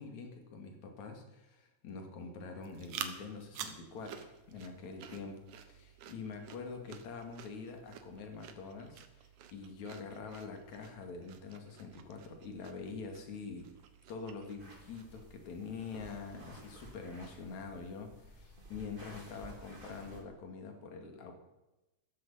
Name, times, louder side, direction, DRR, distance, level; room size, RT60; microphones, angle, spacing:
voice 1, 0.0-13.7 14.1-21.3, left 4 dB, 70° left, 4 dB, 3.7 m, -45 dB
sound 1, 2.6-15.3, right 8 dB, 85° right, 2.7 m, -50 dB
sound 2, 14.6-20.2, right 1 dB, 15° right, 2.9 m, -53 dB
16.0 x 14.0 x 5.7 m, 1.0 s
omnidirectional pair, 3.4 m